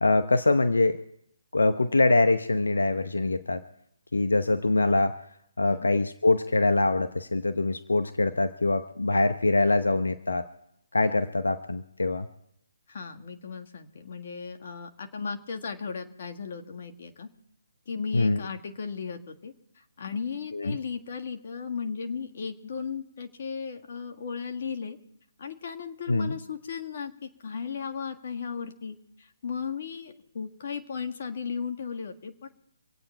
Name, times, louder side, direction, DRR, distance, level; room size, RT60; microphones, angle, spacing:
voice 1, 0.0-1.0 1.5-3.6 4.1-5.1 5.6-10.5 10.9-12.3 18.1-18.4 20.5-20.8 26.1-26.4, left 2 dB, 85° left, 9 dB, 0.8 m, -24 dB
voice 2, 12.9-17.3 17.9-19.5 20.0-25.0 25.4-32.5, left 6 dB, 50° left, 5 dB, 1.7 m, -36 dB
26.0 x 8.9 x 4.5 m, 0.74 s
hypercardioid pair, 150°, 0 cm